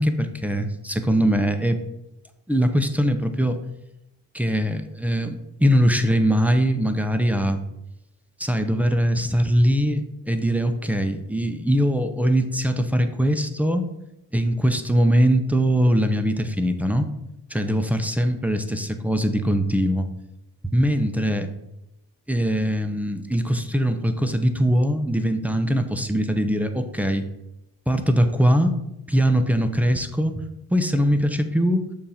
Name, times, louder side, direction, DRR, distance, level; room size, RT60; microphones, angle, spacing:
voice 1, 0.0-1.8 2.5-3.6 4.3-7.6 8.4-13.8 14.3-17.1 17.5-20.1 20.7-21.5 22.3-27.2 27.9-28.7 29.1-30.4 30.7-31.8, equal, 5° right, 7 dB, 0.5 m, -21 dB
6.9 x 2.5 x 5.5 m, 0.88 s
cardioid pair, 95°, 40 cm